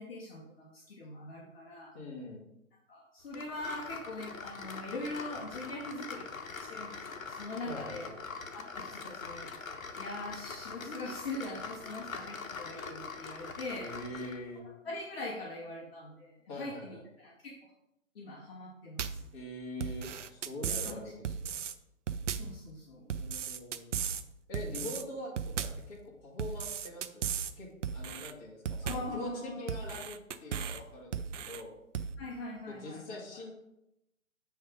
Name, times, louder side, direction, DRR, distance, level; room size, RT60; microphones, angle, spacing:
voice 1, 0.0-2.0 2.9-8.1 8.5-13.9 14.8-17.7 18.1-19.2 20.7-21.0 22.3-23.1 28.8-29.7 32.2-33.2, left 2 dB, 45° left, -2 dB, 1.3 m, -42 dB
voice 2, 1.9-2.4 7.7-8.1 13.8-14.6 16.5-17.0 19.3-21.7 23.1-23.9 24.5-27.3 27.6-27.7 27.9-31.7 32.7-33.5, left 1 dB, 25° left, -4 dB, 2.0 m, -43 dB
sound 1, 3.3-14.4, left 4 dB, 80° left, 1.2 m, -43 dB
sound 2, 19.0-19.3 19.8-20.9 21.2-21.7 22.1-22.6 23.1-24.2 24.5-25.0 25.4-25.9 26.4-27.5 27.8-28.3 28.7-29.2 29.7-30.8 31.1-31.6 31.9-32.1, right 7 dB, 65° right, 0.6 m, -36 dB
7.8 x 3.5 x 5.1 m, 0.84 s
hypercardioid pair, 155°, 40 cm